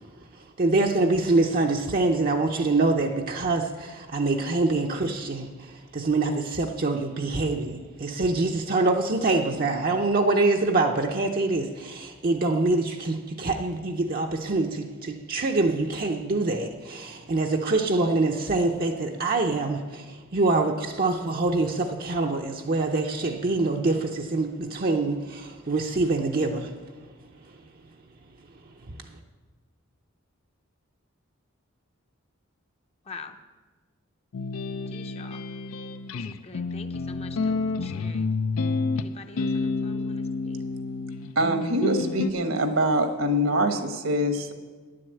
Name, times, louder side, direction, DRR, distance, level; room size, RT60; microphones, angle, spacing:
voice 1, 0.6-26.8, right 3 dB, 45° right, 0.6 m, -25 dB
sound 1, 34.3-42.3, left 3 dB, 75° left, 0.5 m, -29 dB
voice 2, 34.9-35.5 36.1-38.3 39.0-40.6, left 4 dB, 30° left, 0.7 m, -45 dB
voice 3, 41.3-44.5, equal, 70° right, 1.2 m, -24 dB
10.0 x 7.7 x 7.8 m
head